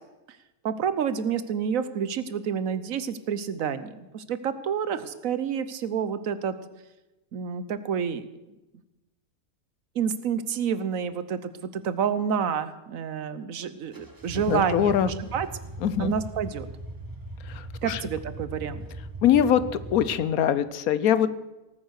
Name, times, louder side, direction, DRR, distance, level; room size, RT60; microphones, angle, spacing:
voice 1, 0.6-6.5 7.3-8.2 9.9-15.5 16.0-16.7 17.8-18.8, right 7 dB, 70° right, 13 dB, 1.2 m, -29 dB
sound 1, 13.9-20.1, right 1 dB, 15° right, 0.9 m, -39 dB
voice 2, 14.5-15.1 15.8-16.1 17.5-18.0 19.2-21.3, left 9 dB, 75° left, 15 dB, 1.2 m, -23 dB
17.5 x 9.4 x 6.4 m, 1.0 s
omnidirectional pair, 1.5 m